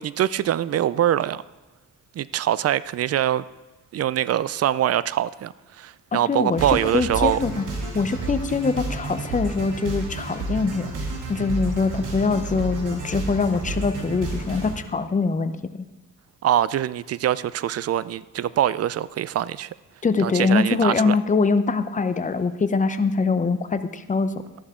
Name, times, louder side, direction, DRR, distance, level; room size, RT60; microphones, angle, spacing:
voice 1, 0.0-1.4 2.1-3.4 3.9-7.4 16.4-19.7 20.2-21.2, right 11 dB, 50° right, 18 dB, 0.4 m, -23 dB
voice 2, 6.1-7.6 7.9-10.9 11.3-15.8 20.0-24.3, left 4 dB, 25° left, 10 dB, 0.7 m, -23 dB
sound 1, 6.5-14.7, right 2 dB, 75° right, 2.8 m, -31 dB
13.0 x 11.0 x 3.7 m, 1.1 s
cardioid pair, 105°, 31 cm